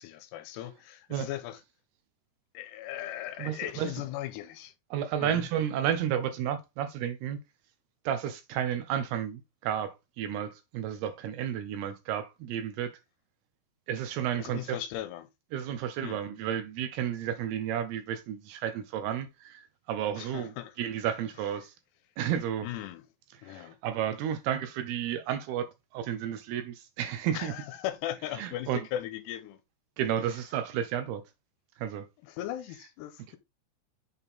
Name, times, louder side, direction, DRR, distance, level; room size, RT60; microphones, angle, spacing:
voice 1, 0.0-1.6 2.5-4.7 5.2-5.5 14.4-15.3 16.0-16.2 20.2-20.8 22.6-23.1 23.4-23.8 27.3-29.6 30.2-30.4 32.2-33.4, left 12 dB, 85° left, 2.9 m, -38 dB
voice 2, 3.4-3.9 4.9-7.4 8.1-13.0 13.9-14.8 15.5-20.5 20.8-21.7 22.2-22.7 23.4-27.5 28.4-28.8 30.0-31.2 31.8-32.1, right 10 dB, 80° right, 2.5 m, -32 dB
8.0 x 4.2 x 3.5 m
omnidirectional pair, 4.9 m